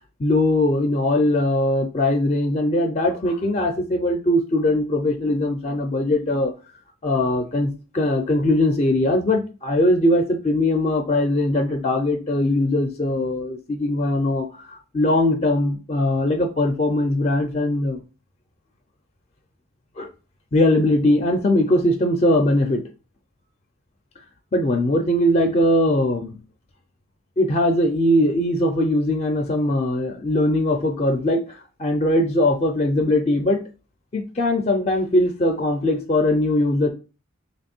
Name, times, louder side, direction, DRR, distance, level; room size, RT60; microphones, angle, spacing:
voice 1, 0.2-6.5 7.0-18.0 20.0-20.1 20.5-22.8 24.5-26.4 27.4-31.4 31.8-33.6 34.1-36.9, left 1 dB, 30° left, 0.4 m, -20 dB
3.0 x 2.6 x 4.3 m
head